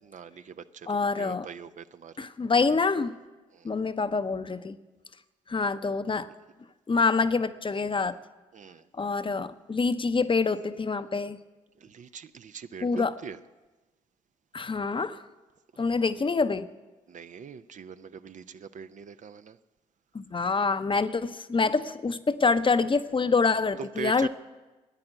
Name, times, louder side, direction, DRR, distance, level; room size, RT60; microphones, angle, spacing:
voice 1, 0.0-2.3 3.5-3.7 8.5-8.9 11.8-13.4 17.1-19.6 23.8-24.3, right 6 dB, 50° right, 0.6 m, -42 dB
voice 2, 0.9-1.5 2.2-3.2 3.6-4.8 5.5-6.3 6.9-8.2 9.0-11.4 12.8-13.1 14.5-15.2 15.8-16.7 20.1-24.3, left 4 dB, 30° left, 0.8 m, -26 dB
13.0 x 9.6 x 7.9 m
hypercardioid pair, 40°, 17 cm